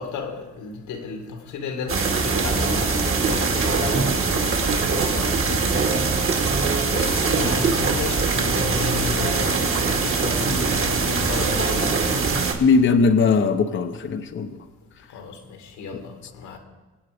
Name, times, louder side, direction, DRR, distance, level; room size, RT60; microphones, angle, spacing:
voice 1, 0.0-5.7 6.9-12.2 15.1-16.6, left 5 dB, 90° left, 2.2 m, -33 dB
sound 1, 1.9-12.5, right 4 dB, 45° right, 2.5 m, -22 dB
voice 2, 12.6-14.6 15.9-16.0, left 4 dB, 40° left, 0.9 m, -19 dB
24.0 x 8.1 x 5.1 m
cardioid pair, 90°, 30 cm